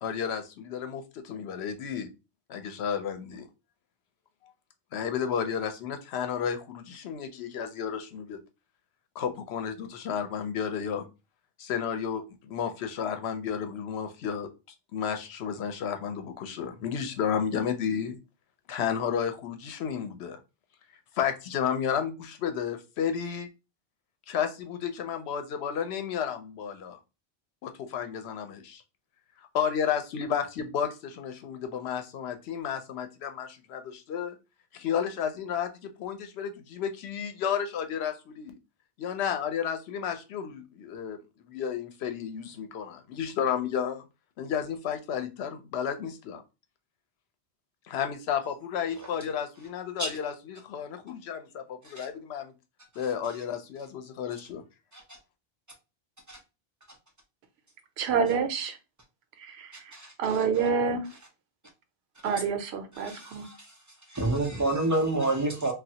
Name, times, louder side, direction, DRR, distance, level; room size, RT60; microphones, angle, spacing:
voice 1, 0.0-2.1 2.5-3.5 4.9-8.4 9.2-11.1 11.6-14.5 14.9-18.2 18.7-20.4 21.2-23.5 24.3-27.0 27.6-28.8 29.4-34.4 34.7-38.6 39.0-41.2 41.5-44.1 44.4-46.4 47.9-52.5 53.0-54.6, left 8 dB, 85° left, 0.9 m, -32 dB
voice 2, 58.0-58.8 59.4-61.1 62.2-63.5, right 6 dB, 85° right, 0.9 m, -28 dB
voice 3, 59.9-60.4 62.2-62.3 63.0-63.7 64.1-65.7, right 2 dB, 25° right, 0.5 m, -29 dB
3.2 x 2.3 x 2.7 m
omnidirectional pair, 1.1 m